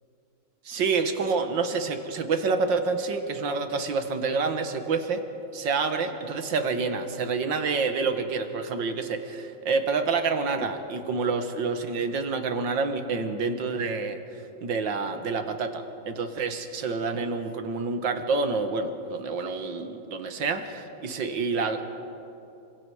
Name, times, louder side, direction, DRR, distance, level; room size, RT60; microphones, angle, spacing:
voice 1, 0.7-5.2 5.5-14.2 14.6-21.8, right 4 dB, 65° right, 7 dB, 2.1 m, -28 dB
27.5 x 25.0 x 4.9 m, 2.8 s
omnidirectional pair, 2.2 m